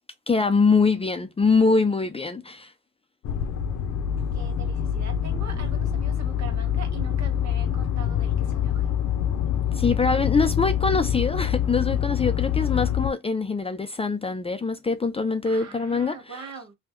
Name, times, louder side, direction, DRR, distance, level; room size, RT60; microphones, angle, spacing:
voice 1, 0.3-2.7 9.7-16.5, left 4 dB, 20° left, 0.4 m, -23 dB
sound 1, 3.2-13.1, left 9 dB, 75° left, 0.8 m, -25 dB
voice 2, 4.3-9.0 15.4-16.7, right 5 dB, 65° right, 1.6 m, -42 dB
3.6 x 2.3 x 3.0 m
cardioid pair, 90°, 30 cm